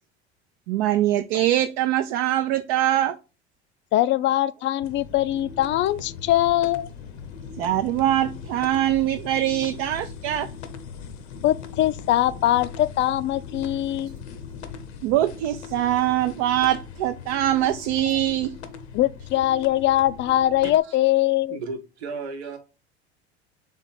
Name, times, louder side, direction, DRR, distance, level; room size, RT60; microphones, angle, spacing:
voice 1, 0.7-3.2 7.6-10.5 15.0-18.5, right 13 dB, 60° right, 0.5 m, -23 dB
voice 2, 3.9-6.9 11.4-14.2 18.9-21.6, left 14 dB, 35° left, 0.4 m, -22 dB
sound 1, 4.8-20.8, left 6 dB, 80° left, 0.8 m, -39 dB
voice 3, 20.6-21.0 21.5-22.6, right 4 dB, 80° right, 1.0 m, -34 dB
3.6 x 3.6 x 4.0 m
hypercardioid pair, 70°, 33 cm